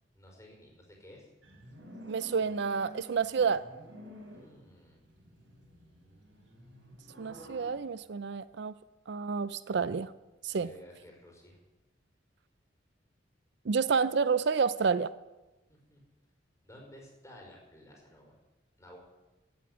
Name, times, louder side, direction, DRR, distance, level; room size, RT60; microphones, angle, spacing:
voice 1, 0.1-1.3 4.3-5.0 10.5-11.6 15.7-16.0 16.6-18.4 18.8-19.0, equal, 15° left, 0 dB, 5.0 m, -54 dB
sound 1, 1.4-7.8, equal, 80° right, 4.5 m, -51 dB
voice 2, 2.1-3.7 7.2-8.7 9.1-10.1 10.4-10.7 13.7-15.1, right 5 dB, 60° right, 15 dB, 0.5 m, -29 dB
16.0 x 8.5 x 9.5 m, 1.1 s
head